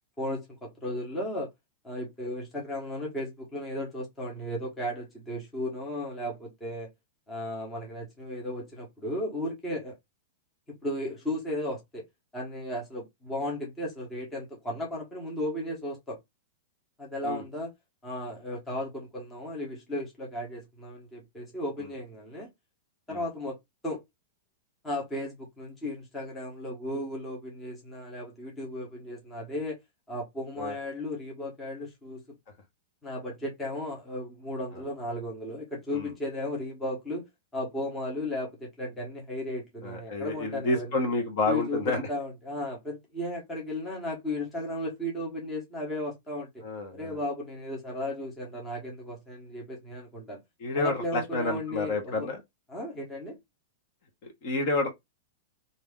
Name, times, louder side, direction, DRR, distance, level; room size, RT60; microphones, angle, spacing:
voice 1, 0.2-1.5 1.8-6.9 7.3-10.0 10.7-12.1 12.3-16.2 17.0-17.7 18.0-22.5 23.1-23.6 23.8-24.0 24.8-29.8 30.1-32.4 33.0-40.9 41.5-46.6 46.9-50.4 50.7-52.3 52.7-53.4, left 1 dB, 10° left, 1.1 m, -35 dB
voice 2, 39.8-42.1 46.6-47.2 50.6-52.4 54.2-54.9, left 2 dB, 40° left, 1.2 m, -29 dB
2.8 x 2.7 x 3.5 m
supercardioid pair, 165°, 0 cm